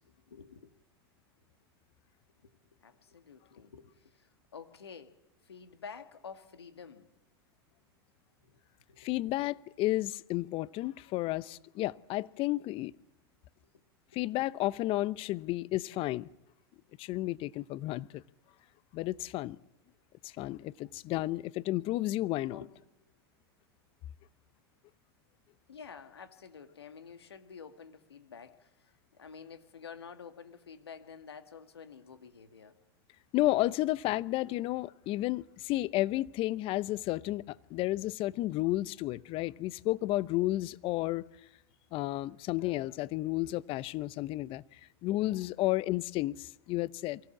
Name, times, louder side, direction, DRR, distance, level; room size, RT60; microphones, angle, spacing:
voice 1, 0.1-0.7 2.4-2.6 2.8-4.1 4.5-5.1 5.5-7.1 8.4-8.6 8.9-9.2 22.5-22.7 25.7-28.7 29.2-32.8, left 6 dB, 90° left, 2.0 m, -49 dB
voice 2, 9.0-12.9 14.1-16.3 17.0-18.2 18.9-19.6 20.2-22.6 33.3-41.3 41.9-47.2, left 17 dB, 45° left, 0.7 m, -32 dB
24.0 x 16.5 x 7.3 m
hypercardioid pair, 100°, 13 cm